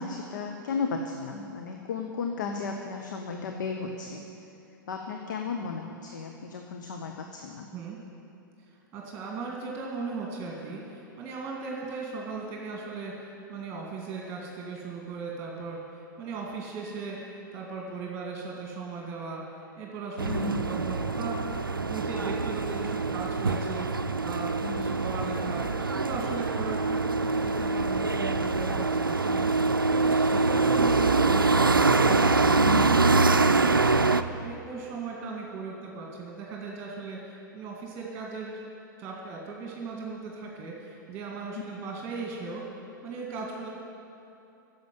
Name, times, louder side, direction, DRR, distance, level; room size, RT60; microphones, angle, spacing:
voice 1, 0.0-4.2 4.9-7.7 20.2-20.6 24.6-24.9 32.5-32.8, left 4 dB, 60° left, 3 dB, 0.9 m, -34 dB
voice 2, 8.9-29.5 29.8-34.1 34.4-38.5 39.0-42.6 43.0-43.7, right 4 dB, 25° right, -2 dB, 2.0 m, -38 dB
sound 1, 20.2-34.2, right 3 dB, 85° right, 0.4 m, -24 dB
10.5 x 7.3 x 9.3 m, 2.7 s
figure-of-eight pair, 95°, 11 cm